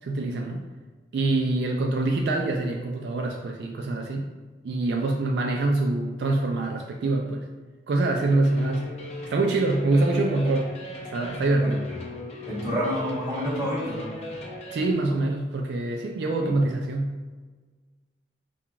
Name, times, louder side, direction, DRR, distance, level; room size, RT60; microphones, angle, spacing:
voice 1, 0.0-0.6 1.1-4.3 4.6-7.5 7.9-8.9 9.3-10.8 11.0-11.9 14.7-17.2, right 2 dB, 65° right, 2 dB, 0.3 m, -25 dB
sound 1, 8.2-14.9, left 1 dB, 35° left, 0.5 m, -38 dB
voice 2, 12.5-14.1 16.4-16.5, equal, 20° right, -7 dB, 1.0 m, -28 dB
5.6 x 2.3 x 2.3 m, 1.4 s
head